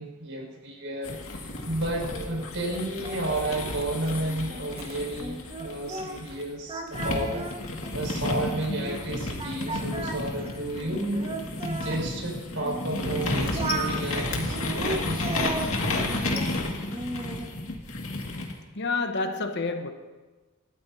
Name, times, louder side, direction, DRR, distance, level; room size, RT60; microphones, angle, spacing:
voice 1, 0.0-7.5 7.9-11.3 11.6-15.4, right 1 dB, 65° right, 5.5 m, -32 dB
sound 1, 1.0-6.4 6.9-18.5, left 2 dB, 75° left, 2.1 m, -32 dB
Singing, 1.9-6.4 6.7-9.0 9.4-12.0 12.6-13.9 14.5-16.5 16.9-17.5, right 2 dB, 30° right, 1.5 m, -36 dB
voice 2, 18.8-19.9, left 3 dB, 55° left, 1.1 m, -28 dB
28.5 x 14.0 x 2.8 m
head